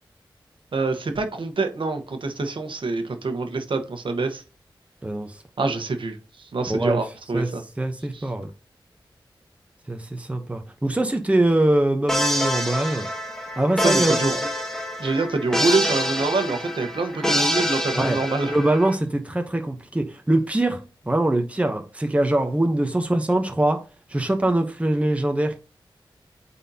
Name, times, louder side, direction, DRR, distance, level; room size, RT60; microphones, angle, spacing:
voice 1, 0.7-4.4 5.6-7.6 8.1-8.3 12.6-13.0 13.8-14.5 15.0-18.5, right 3 dB, 75° right, 1.2 m, -26 dB
voice 2, 6.7-7.0 7.3-7.5 7.8-8.5 9.9-13.1 13.6-14.2 17.9-18.2 18.5-20.8 21.1-25.6, right 1 dB, 15° right, 0.9 m, -23 dB
sound 1, 12.1-18.9, equal, 5° left, 1.2 m, -26 dB
8.9 x 4.2 x 2.8 m
wide cardioid pair, 105°, 9 cm